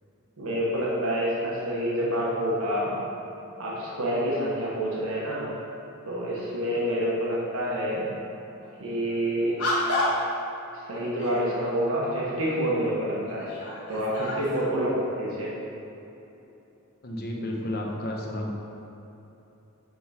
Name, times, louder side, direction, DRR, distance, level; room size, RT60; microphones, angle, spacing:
voice 1, 0.4-2.9 3.6-5.5 6.1-8.1 8.8-9.6 10.9-13.6 13.9-15.5, equal, 75° right, -6 dB, 1.3 m, -27 dB
sound 1, 8.6-8.8 9.6-10.4 10.9-11.5 12.5-12.6 13.2-14.8, left 1 dB, 85° left, 1.4 m, -30 dB
voice 2, 17.0-18.5, left 1 dB, 45° left, -1 dB, 0.8 m, -31 dB
7.2 x 3.8 x 4.3 m, 2.9 s
head